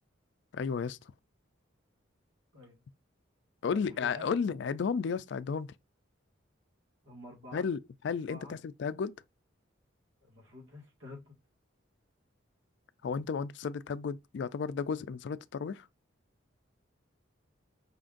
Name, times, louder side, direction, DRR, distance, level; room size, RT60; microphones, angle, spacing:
voice 1, 0.5-1.1 3.6-5.8 7.5-9.2 13.0-15.9, left 6 dB, 60° left, 0.3 m, -33 dB
voice 2, 3.6-4.3 7.0-7.7 8.3-8.6 10.2-11.3, left 2 dB, 85° right, 1.7 m, -49 dB
5.1 x 3.8 x 2.5 m
head